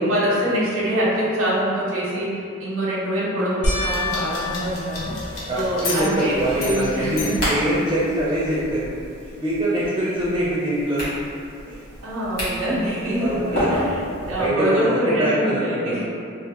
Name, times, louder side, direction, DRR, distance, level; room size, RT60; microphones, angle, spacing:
voice 1, 0.0-7.4 12.0-16.0, equal, 75° right, -7 dB, 0.6 m, -24 dB
sound 1, 3.6-6.2 6.8-7.4 7.8-7.9 11.1-11.2, left 2 dB, 35° left, 0.6 m, -29 dB
sound 2, 3.7-8.3, left 1 dB, 80° left, 0.7 m, -33 dB
voice 2, 5.3-8.9 9.2-11.1 11.7-11.8 13.2-13.7 14.4-16.0, right 1 dB, 25° right, -7 dB, 0.4 m, -24 dB
sound 3, 6.4-14.5, equal, 50° left, 1.2 m, -31 dB
3.4 x 2.0 x 2.9 m, 2.4 s
head